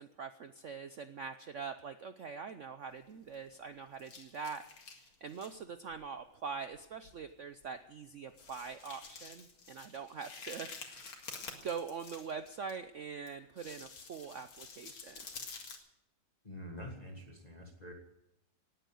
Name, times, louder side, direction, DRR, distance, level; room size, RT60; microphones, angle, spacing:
voice 1, 0.0-11.2 11.5-15.2, right 6 dB, 85° right, 10 dB, 0.6 m, -43 dB
sound 1, 2.9-3.7 4.0-5.6 5.9-6.1 6.7-6.8 7.0-7.2 7.6-7.7 8.3-12.7 13.3-15.8, left 5 dB, 85° left, 2.8 m, -49 dB
voice 2, 16.4-17.9, left 1 dB, 20° left, 1 dB, 1.8 m, -46 dB
18.5 x 9.4 x 7.8 m, 0.84 s
omnidirectional pair, 2.2 m